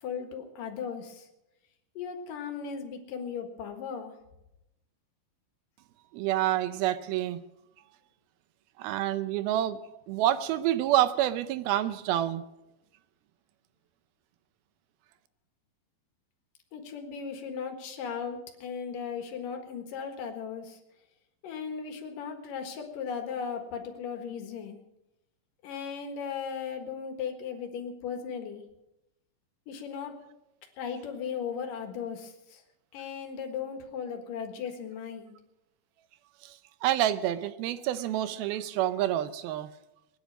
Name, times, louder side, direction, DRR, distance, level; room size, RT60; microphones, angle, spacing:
voice 1, 0.0-1.3 2.0-4.1 16.7-20.8 21.4-24.8 25.6-28.6 29.7-30.2 30.8-32.6 32.9-35.4, left 6 dB, 65° left, 5 dB, 3.0 m, -37 dB
voice 2, 6.1-7.4 8.8-9.8 10.1-12.4 36.4-36.6 36.8-39.7, right 12 dB, 80° right, 14 dB, 2.5 m, -28 dB
20.5 x 10.5 x 6.3 m, 0.91 s
omnidirectional pair, 4.5 m